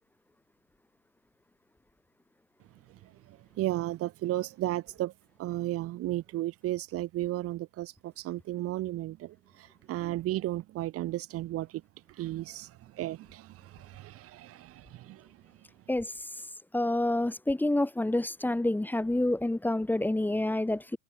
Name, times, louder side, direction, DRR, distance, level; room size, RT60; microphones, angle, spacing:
voice 1, 2.9-5.1 5.4-11.8 12.1-15.3, right 15 dB, 35° right, 4.7 m, -34 dB
voice 2, 15.9-16.3 16.7-21.0, left 1 dB, 5° left, 4.9 m, -28 dB
figure-of-eight pair, 90°, 41 cm